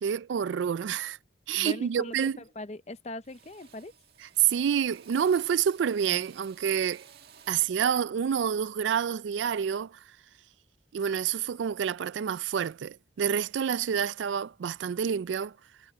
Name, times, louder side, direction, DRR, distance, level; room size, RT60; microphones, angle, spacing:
voice 1, 0.0-1.2 1.5-2.4 4.4-7.1 7.5-10.0 10.9-15.6, right 8 dB, 80° right, 0.3 m, -28 dB
Drill, 0.9-1.2 1.6-2.1 2.3-2.9 3.2-7.8, right 7 dB, 55° right, 1.8 m, -56 dB
voice 2, 1.5-3.9, left 2 dB, 35° left, 0.7 m, -40 dB
head